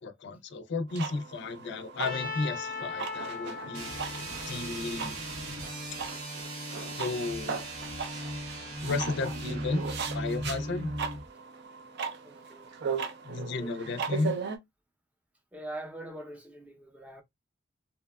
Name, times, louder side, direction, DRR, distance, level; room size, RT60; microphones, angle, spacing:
voice 1, 0.0-4.2 4.5-5.2 7.0-7.6 8.1-8.2 8.8-9.8 10.1-10.9 13.2-14.4, left 3 dB, 60° left, 0.4 m, -33 dB
sound 1, 0.9-14.6, right 5 dB, 60° right, 0.4 m, -38 dB
Trumpet, 2.0-6.1, left 4 dB, 75° right, 1.2 m, -40 dB
sound 2, 3.7-11.2, right 1 dB, 90° right, 0.7 m, -38 dB
voice 2, 12.2-12.7 13.6-13.7 15.5-17.2, right 1 dB, 5° right, 0.5 m, -43 dB
2.8 x 2.2 x 2.2 m
head